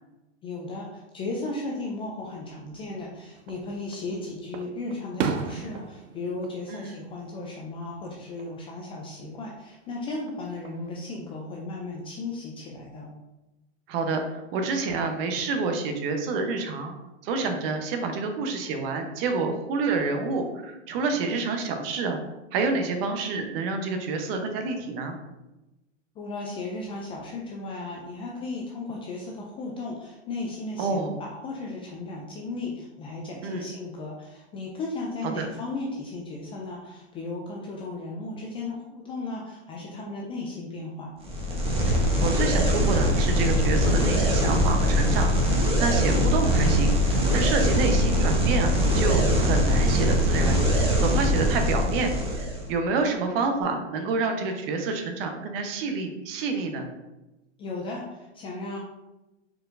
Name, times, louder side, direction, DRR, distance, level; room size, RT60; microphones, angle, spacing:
voice 1, 0.4-13.1 26.2-41.1 57.6-58.8, left 2 dB, 15° left, -2 dB, 0.3 m, -35 dB
Fireworks, 3.4-4.1 4.5-7.7 8.0-8.5 10.1-10.9, right 6 dB, 80° right, 0.6 m, -35 dB
voice 2, 13.9-16.9 17.2-22.2 22.5-25.2 30.8-31.1 33.4-33.7 35.4-35.5 41.9-56.9, right 4 dB, 50° right, 5 dB, 0.9 m, -28 dB
sound 1, 41.2-52.7, equal, 15° right, 1.0 m, -22 dB
4.5 x 4.3 x 2.5 m, 1.0 s
hypercardioid pair, 125°, 36 cm